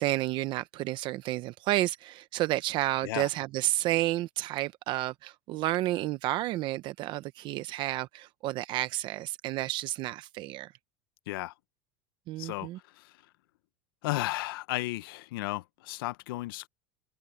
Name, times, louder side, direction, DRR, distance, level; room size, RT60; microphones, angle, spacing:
voice 1, 0.0-10.7 12.3-12.8, right 16 dB, 45° right, 0.7 m, -31 dB
voice 2, 12.4-13.1 14.0-16.7, left 19 dB, 80° left, 0.8 m, -34 dB
supercardioid pair, 145°, 12 cm